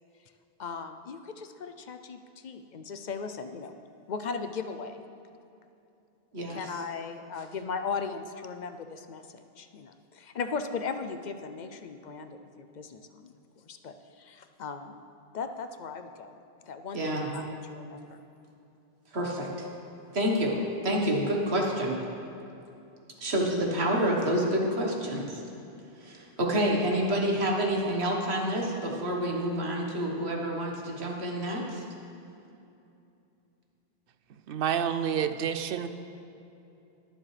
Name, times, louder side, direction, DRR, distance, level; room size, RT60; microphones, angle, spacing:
voice 1, 0.6-3.7 4.1-5.0 6.4-15.0 15.3-16.3 16.7-18.2, left 5 dB, 55° left, 8 dB, 0.6 m, -38 dB
voice 2, 16.9-17.3 19.1-19.7 20.1-20.6 20.8-22.0 23.2-25.3 26.0-31.8, right 1 dB, 90° right, 0 dB, 1.7 m, -28 dB
voice 3, 34.5-35.9, right 8 dB, 65° right, 10 dB, 0.7 m, -28 dB
21.5 x 7.4 x 3.3 m, 2.7 s
omnidirectional pair, 1.0 m